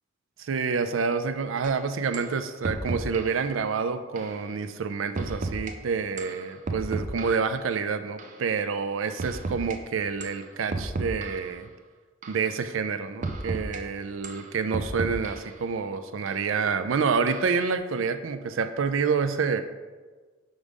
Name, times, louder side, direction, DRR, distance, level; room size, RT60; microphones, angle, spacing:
voice 1, 0.5-11.7 12.3-19.6, right 5 dB, 90° right, 10 dB, 0.4 m, -28 dB
sound 1, 1.6-1.7 2.1-2.3 2.6-3.4 4.2-4.4 5.2-5.7 6.2-7.5 8.2-8.4 9.2-9.8 10.2-10.4 10.7-11.5 12.2-12.5 13.2-13.8 14.2-15.5 16.3-16.4 17.3-17.6, right 2 dB, 40° right, 0.5 m, -33 dB
5.3 x 4.9 x 5.2 m, 1.4 s
head